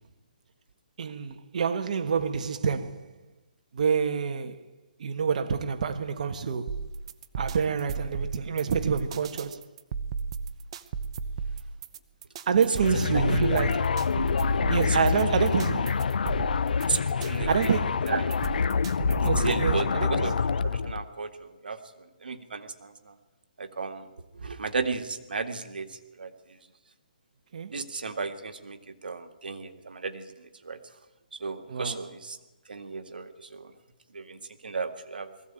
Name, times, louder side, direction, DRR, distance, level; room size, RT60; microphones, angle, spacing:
voice 1, 1.0-3.1 3.7-4.6 5.0-6.8 7.4-9.6 12.5-14.1 14.7-16.1 17.2-18.1 19.2-20.3 27.5-27.7 31.7-32.0, right 6 dB, 55° right, 1.4 m, -27 dB
sound 1, 6.7-19.7, right 5 dB, 35° right, 1.0 m, -35 dB
sound 2, 12.8-21.0, left 5 dB, 70° left, 0.7 m, -26 dB
voice 2, 16.9-17.7 18.1-18.3 19.4-20.4 20.6-23.2 23.6-25.9 26.2-26.3 27.7-30.8 31.4-32.4 32.7-33.7 34.1-35.3, right 4 dB, 85° right, 2.1 m, -34 dB
20.0 x 15.5 x 8.9 m
hypercardioid pair, 160°, 5 cm